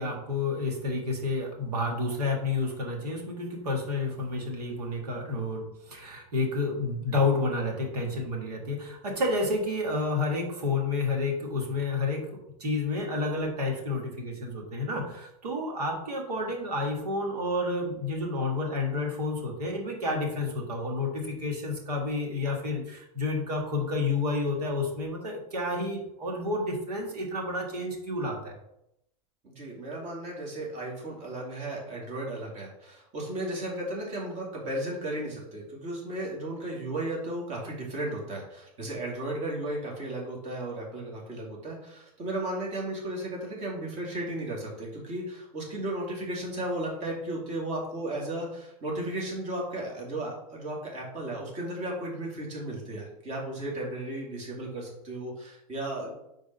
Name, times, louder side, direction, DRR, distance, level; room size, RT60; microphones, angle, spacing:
voice 1, 0.0-28.6, left 2 dB, 90° right, 1 dB, 1.8 m, -30 dB
voice 2, 29.4-56.1, right 1 dB, 35° right, -2 dB, 2.5 m, -35 dB
5.0 x 3.9 x 5.4 m, 0.82 s
hypercardioid pair, 120°, 20 cm